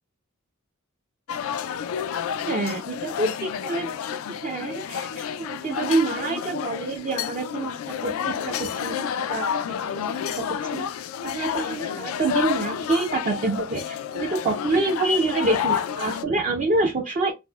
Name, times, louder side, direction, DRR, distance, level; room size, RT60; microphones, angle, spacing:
sound 1, 1.3-16.2, left 8 dB, 85° left, 0.3 m, -30 dB
voice 1, 2.5-3.9 4.4-10.0 10.3-10.9 11.2-17.3, right 3 dB, 35° right, 0.4 m, -27 dB
4.1 x 2.1 x 2.2 m
head